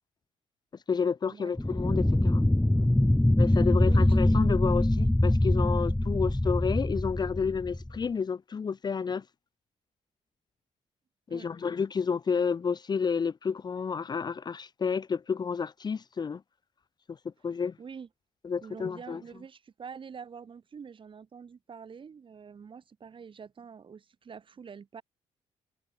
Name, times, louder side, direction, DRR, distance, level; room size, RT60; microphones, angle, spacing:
voice 1, 0.9-2.4 3.4-9.2 11.3-16.4 17.4-17.7 18.4-19.2, left 6 dB, 35° left, 0.9 m, -30 dB
sound 1, 1.6-8.0, left 1 dB, 5° left, 1.6 m, -24 dB
voice 2, 3.8-4.2 11.3-11.5 17.8-18.1 18.6-25.0, right 6 dB, 45° right, 6.4 m, -46 dB
cardioid pair, 110°, 12 cm